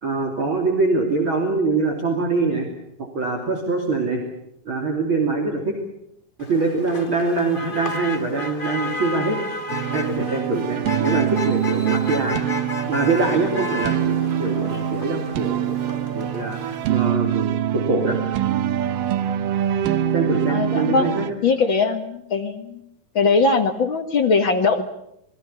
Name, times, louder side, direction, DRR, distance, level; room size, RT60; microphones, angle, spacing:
voice 1, 0.0-2.7 3.1-4.2 4.6-5.8 6.5-9.4 9.9-12.4 12.9-18.2 20.1-21.2, right 3 dB, 40° right, 2 dB, 3.5 m, -24 dB
Motor vehicle (road), 6.4-16.9, left 2 dB, 80° left, 0.4 m, -32 dB
sound 1, 9.7-21.3, right 10 dB, 85° right, 2.7 m, -24 dB
voice 2, 20.5-21.1 21.4-22.8 23.2-24.8, left 4 dB, 45° left, 6 dB, 1.8 m, -20 dB
27.0 x 21.5 x 7.0 m, 0.78 s
omnidirectional pair, 3.7 m